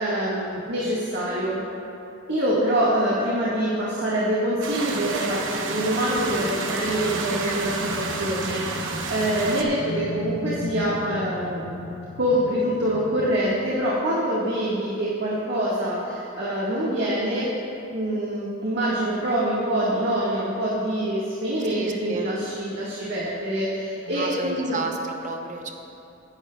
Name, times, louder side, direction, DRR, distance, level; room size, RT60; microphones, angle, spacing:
voice 1, 0.0-1.6 2.3-11.8 12.2-17.5 17.9-24.8, right 1 dB, 60° right, -8 dB, 1.6 m, -25 dB
sound 1, 4.6-9.6, right 4 dB, 80° right, 0.9 m, -30 dB
sound 2, 5.4-13.4, left 2 dB, 50° left, 0.5 m, -37 dB
voice 2, 7.3-7.6 21.7-22.3 24.1-25.7, right 3 dB, 40° right, 3 dB, 0.8 m, -32 dB
16.0 x 10.5 x 2.3 m, 2.9 s
head